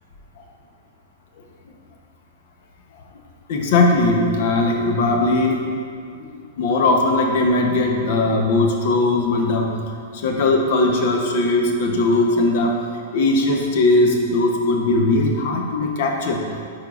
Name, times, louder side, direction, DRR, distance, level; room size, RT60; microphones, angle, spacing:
voice 1, 3.5-5.6 6.2-6.3 6.6-9.7 10.1-12.8 13.1-16.6, left 2 dB, 55° left, 2 dB, 0.8 m, -19 dB
8.9 x 4.6 x 2.4 m, 2.3 s
supercardioid pair, 160°, 0 cm